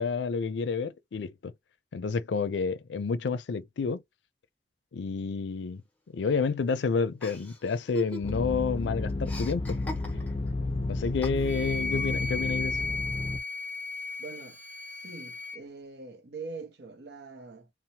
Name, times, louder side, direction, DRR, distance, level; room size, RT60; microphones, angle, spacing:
voice 1, 0.0-1.5 1.9-4.0 4.9-5.8 6.1-9.8 10.9-12.8, left 5 dB, 85° left, 0.4 m, -29 dB
Chuckle chortle, 7.2-8.6 8.8-10.5 11.2-11.8, equal, 10° left, 0.8 m, -41 dB
sound 1, 8.2-13.4, left 2 dB, 30° left, 0.4 m, -32 dB
Wind instrument woodwind instrument, 11.4-15.6, left 3 dB, 35° right, 1.1 m, -35 dB
voice 2, 14.2-14.6 14.9-17.7, right 4 dB, 70° right, 0.7 m, -43 dB
2.8 x 2.0 x 2.7 m
head